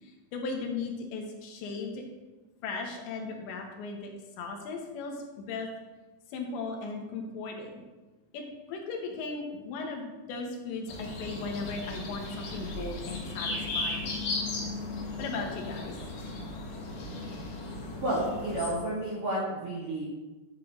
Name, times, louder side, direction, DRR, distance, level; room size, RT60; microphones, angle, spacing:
voice 1, 0.0-2.0 2.6-4.1 4.4-5.7 6.3-7.8 8.3-14.3 14.6-14.7 15.2-16.0, left 4 dB, 80° left, 2 dB, 3.4 m, -37 dB
sound 1, 10.9-18.7, left 2 dB, 55° left, 3.3 m, -36 dB
voice 2, 18.0-20.1, right 1 dB, 75° right, -6 dB, 1.3 m, -31 dB
11.0 x 8.0 x 3.8 m, 1.2 s
omnidirectional pair, 5.2 m